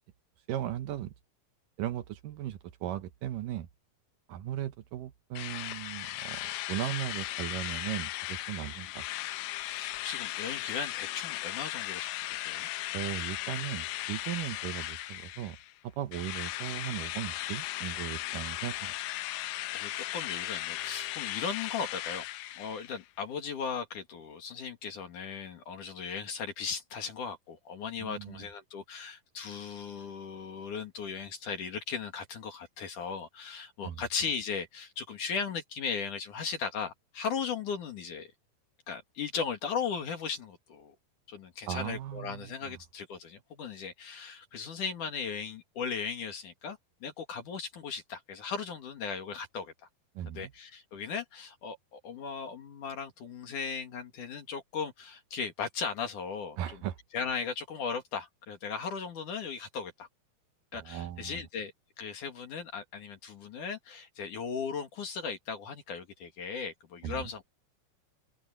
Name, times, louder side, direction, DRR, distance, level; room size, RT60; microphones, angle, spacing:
voice 1, 0.5-1.1 1.8-3.7 4.3-9.1 12.9-15.6 15.8-18.9 28.0-28.5 33.8-34.0 41.7-42.8 50.2-50.5 56.6-57.0 60.7-61.4 67.0-67.3, right 12 dB, 70° right, 2.3 m, -37 dB
Drill, 5.4-15.7 16.1-23.0, left 16 dB, 80° left, 1.9 m, -37 dB
voice 2, 9.6-12.7 19.7-22.2 22.5-38.3 38.9-40.9 41.3-49.7 50.3-56.8 57.1-60.1 60.7-61.7 62.0-67.4, left 6 dB, 55° left, 3.4 m, -37 dB
omnidirectional pair, 4.5 m